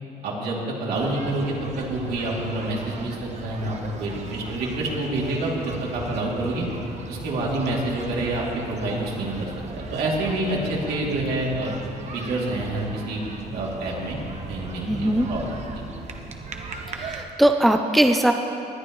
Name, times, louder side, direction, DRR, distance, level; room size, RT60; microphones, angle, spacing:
voice 1, 0.2-6.7 7.1-11.7 12.1-13.2 13.5-14.2 14.5-15.5, right 2 dB, 70° right, -4 dB, 2.8 m, -27 dB
sound 1, 0.9-17.2, right 3 dB, 40° right, 1.0 m, -37 dB
voice 2, 14.9-15.3 16.9-18.3, right 1 dB, ahead, 5 dB, 0.5 m, -20 dB
19.5 x 11.0 x 3.1 m, 2.9 s
cardioid pair, 110°, 17 cm